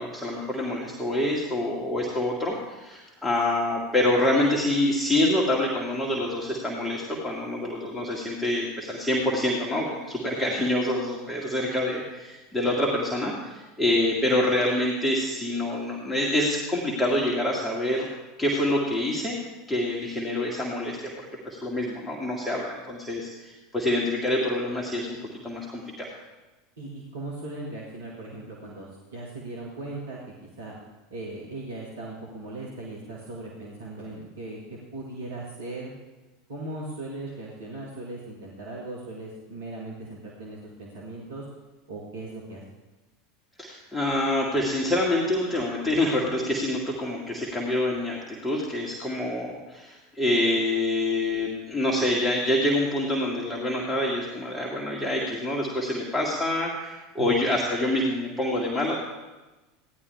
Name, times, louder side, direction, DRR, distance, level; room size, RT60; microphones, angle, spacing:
voice 1, 0.0-18.1 18.4-19.4 19.7-21.0 21.5-25.2 25.4-26.1 43.6-59.0, left 1 dB, 5° left, -4 dB, 2.0 m, -26 dB
voice 2, 26.8-30.8 31.1-35.9 36.5-41.4 41.9-42.6 57.2-57.3, right 2 dB, 70° right, -4 dB, 2.0 m, -38 dB
16.0 x 11.0 x 3.5 m, 1.1 s
figure-of-eight pair, 75°, 0 cm